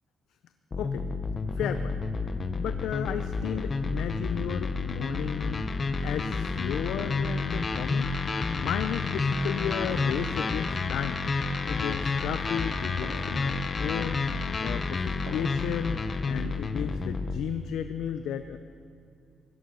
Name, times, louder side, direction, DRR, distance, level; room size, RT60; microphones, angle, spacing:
sound 1, 0.7-17.4, left 4 dB, 35° left, 0.9 m, -30 dB
voice 1, 1.5-1.9 2.6-5.7 6.0-8.1 8.6-11.2 11.7-14.2 14.6-16.0 16.3-18.6, left 9 dB, 85° left, 9 dB, 0.5 m, -34 dB
sound 2, 1.8-2.2 3.4-3.8 5.9-6.1 7.0-7.4 8.8-9.2 9.9-10.4 12.0-12.1 13.0-13.5 15.3-15.7 16.1-16.2, right 2 dB, 80° right, 4.4 m, -45 dB
17.0 x 12.5 x 5.6 m, 2.5 s
cardioid pair, 110°, 0 cm